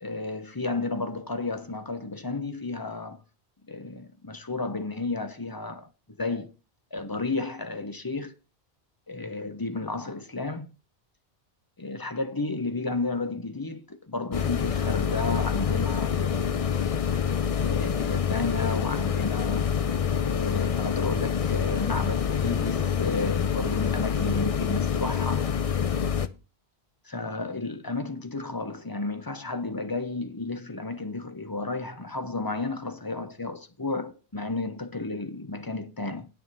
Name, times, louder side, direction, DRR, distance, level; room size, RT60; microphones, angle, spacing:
voice 1, 0.0-3.2 3.7-5.9 6.2-6.5 6.9-8.3 9.1-10.7 11.8-16.6 17.5-19.7 20.0-25.5 27.0-36.3, left 3 dB, 20° left, 1.0 m, -32 dB
sound 1, 14.3-26.3, left 7 dB, 40° left, 0.6 m, -26 dB
9.2 x 7.0 x 5.5 m
omnidirectional pair, 1.1 m